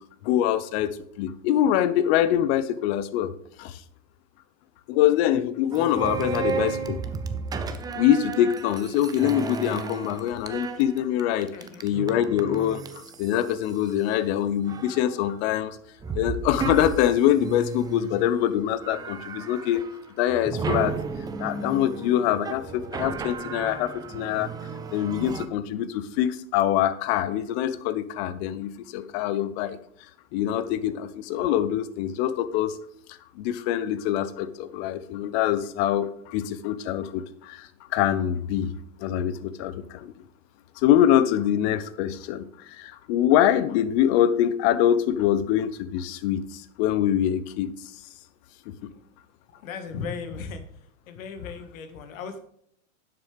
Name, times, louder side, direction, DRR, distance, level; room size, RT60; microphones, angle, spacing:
voice 1, 0.2-3.3 3.6-3.8 4.9-7.0 7.9-11.5 11.8-15.8 16.1-19.8 20.2-21.0 21.4-24.5 24.9-29.8 30.3-32.8 33.1-38.7 39.0-40.1 40.8-47.7 48.8-48.9, left 11 dB, 50° left, 14 dB, 0.9 m, -24 dB
sound 1, 5.7-14.2 14.6-15.3 16.0-18.4 18.8-20.0 20.3-25.5, right 5 dB, 10° right, 0.4 m, -33 dB
voice 2, 11.5-11.8 48.9-49.0 49.5-50.6 51.1-52.4, left 5 dB, 75° left, 7 dB, 1.8 m, -36 dB
10.5 x 7.7 x 3.4 m, 0.70 s
hypercardioid pair, 125°, 41 cm